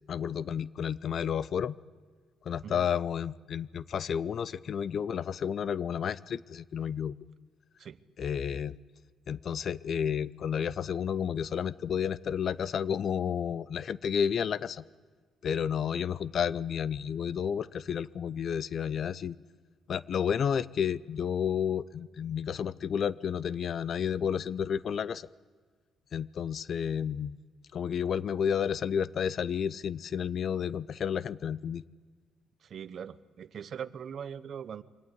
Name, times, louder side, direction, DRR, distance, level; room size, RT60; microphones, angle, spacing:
voice 1, 0.1-1.8 2.4-7.2 8.2-8.8 9.3-14.8 15.4-19.4 19.9-25.3 26.1-27.4 27.7-31.8, left 8 dB, 60° left, 18 dB, 0.6 m, -31 dB
voice 2, 32.6-34.8, right 8 dB, 60° right, 14 dB, 0.9 m, -41 dB
24.5 x 17.5 x 9.7 m, 1.5 s
cardioid pair, 90°, 0 cm